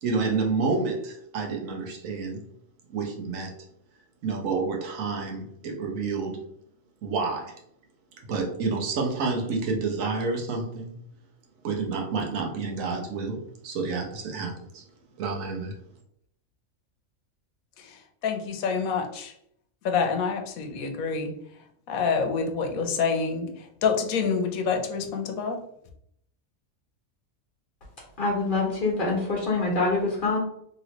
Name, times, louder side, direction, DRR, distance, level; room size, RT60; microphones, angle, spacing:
voice 1, 0.0-2.4 2.9-3.5 4.2-6.4 7.0-7.5 8.3-10.9 11.6-14.8 15.2-15.8, right 4 dB, 70° right, 1 dB, 1.1 m, -29 dB
voice 2, 17.8-19.3 19.8-21.3 21.9-23.5 23.8-25.6, left 5 dB, 85° left, 4 dB, 1.0 m, -27 dB
voice 3, 28.2-30.4, left 3 dB, 40° left, -2 dB, 1.1 m, -25 dB
3.0 x 2.9 x 2.8 m, 0.70 s
omnidirectional pair, 1.4 m